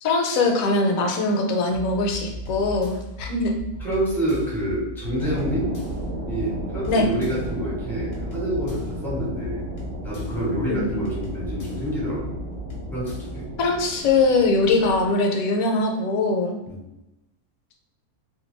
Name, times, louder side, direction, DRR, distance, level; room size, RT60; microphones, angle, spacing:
voice 1, 0.0-3.6 6.9-7.1 10.7-10.9 13.6-16.6, left 3 dB, 75° left, 2 dB, 1.0 m, -22 dB
sound 1, 1.7-13.4, left 2 dB, 50° left, 0.6 m, -37 dB
voice 2, 3.8-5.7 6.3-9.7 10.0-12.4 12.9-13.5 16.7-16.8, right 1 dB, ahead, -6 dB, 0.5 m, -27 dB
sound 2, 5.2-15.1, right 1 dB, 65° right, 0.9 m, -34 dB
2.6 x 2.2 x 3.0 m, 0.94 s
omnidirectional pair, 1.6 m